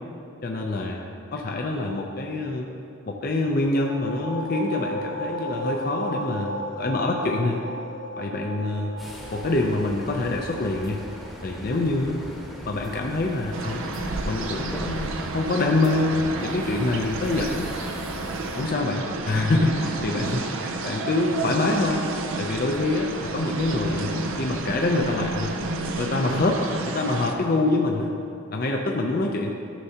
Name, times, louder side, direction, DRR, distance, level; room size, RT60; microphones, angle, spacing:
voice 1, 0.4-1.0 1.3-2.7 3.1-7.6 8.2-8.9 9.3-11.0 11.4-12.2 12.6-13.8 14.3-17.7 18.6-22.0 22.3-25.6 26.0-28.1 28.5-29.5, left 2 dB, 45° left, 0 dB, 0.5 m, -25 dB
sound 1, 3.6-13.0, equal, 70° left, 0.9 m, -35 dB
sound 2, 9.0-18.7, equal, ahead, 1.0 m, -39 dB
sound 3, 13.5-27.3, right 2 dB, 65° right, 0.6 m, -31 dB
13.0 x 6.7 x 2.9 m, 2.5 s
head